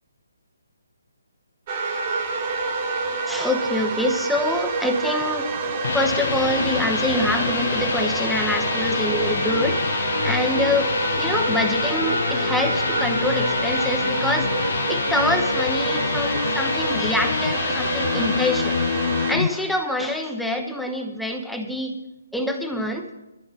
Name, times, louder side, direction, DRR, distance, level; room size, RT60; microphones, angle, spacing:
sound 1, 1.7-19.3, right 4 dB, 25° right, 1.6 m, -27 dB
voice 1, 3.3-5.5 5.9-14.5 14.9-18.8 19.3-21.9 22.3-23.1, left 1 dB, ahead, 3 dB, 1.0 m, -25 dB
sound 2, 5.6-19.5, left 6 dB, 55° left, 0.6 m, -26 dB
19.5 x 14.0 x 4.1 m, 0.96 s
hypercardioid pair, 170°, 0 cm